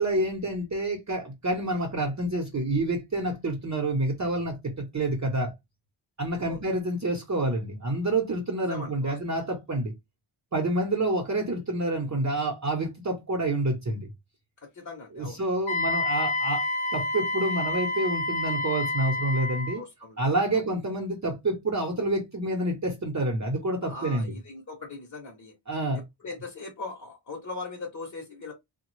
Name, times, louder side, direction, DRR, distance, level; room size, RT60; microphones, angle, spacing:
voice 1, 0.0-5.5 6.2-9.9 10.5-14.1 15.2-16.6 16.9-19.8 20.2-24.3 25.7-26.0, right 2 dB, 35° right, 0.8 m, -28 dB
voice 2, 8.6-9.2 14.7-15.4 19.7-20.3 20.5-20.7 23.8-25.5 26.2-28.5, left 3 dB, 35° left, 0.8 m, -39 dB
Wind instrument woodwind instrument, 15.7-19.8, left 2 dB, 85° left, 0.6 m, -28 dB
3.3 x 2.1 x 3.1 m
wide cardioid pair, 120°, 47 cm